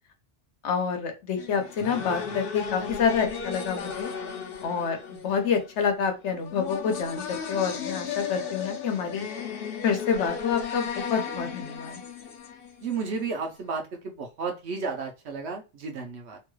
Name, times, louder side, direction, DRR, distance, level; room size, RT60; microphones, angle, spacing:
voice 1, 0.6-4.1 4.6-9.3 9.8-12.0, left 6 dB, 90° left, 5 dB, 1.1 m, -28 dB
sound 1, 1.4-13.2, left 6 dB, 60° left, 0.8 m, -35 dB
voice 2, 12.8-16.4, right 4 dB, 75° right, 3 dB, 1.0 m, -33 dB
3.0 x 2.3 x 3.1 m, 0.28 s
omnidirectional pair, 1.1 m